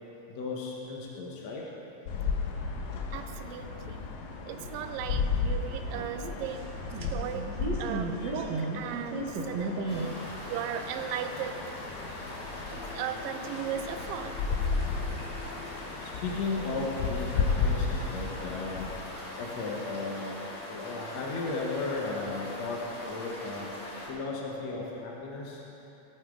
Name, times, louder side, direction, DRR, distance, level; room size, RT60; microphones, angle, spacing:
voice 1, 0.3-1.6 16.0-18.9 19.4-20.4 20.7-23.7 24.1-25.6, left 3 dB, 70° left, -3 dB, 2.4 m, -35 dB
sound 1, 2.1-19.0, left 5 dB, 85° left, 2.3 m, -34 dB
voice 2, 3.1-4.2 4.5-7.5 7.8-11.8 12.7-14.4, right 9 dB, 80° right, 8 dB, 1.3 m, -37 dB
sound 2, 4.5-10.6, right 2 dB, 65° right, 1.1 m, -36 dB
sound 3, 9.9-24.1, left 1 dB, 50° left, 3.5 m, -42 dB
17.5 x 8.9 x 3.8 m, 2.9 s
omnidirectional pair, 3.3 m